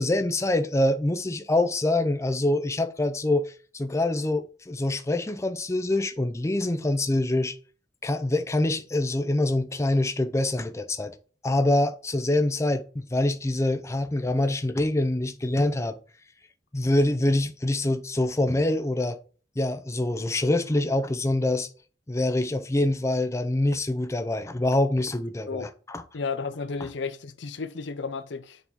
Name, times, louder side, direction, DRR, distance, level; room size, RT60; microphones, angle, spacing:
voice 1, 0.0-7.6 8.0-11.1 11.4-16.0 16.7-19.2 19.6-21.7 22.1-26.0, left 1 dB, 15° left, 0.5 m, -25 dB
voice 2, 26.1-28.6, left 4 dB, 80° left, 0.6 m, -33 dB
7.1 x 4.1 x 3.6 m
head